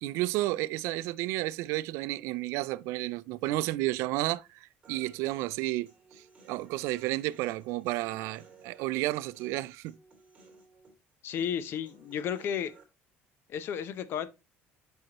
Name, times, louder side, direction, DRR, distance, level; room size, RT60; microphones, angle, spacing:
voice 1, 0.0-5.9 6.5-9.9, right 17 dB, 80° right, 0.3 m, -32 dB
Human voice, 4.8-12.8, right 4 dB, 25° right, 2.7 m, -58 dB
voice 2, 11.2-12.8 13.5-14.3, left 8 dB, 55° left, 0.6 m, -33 dB
7.7 x 5.5 x 2.9 m
cardioid pair, 135°, 5 cm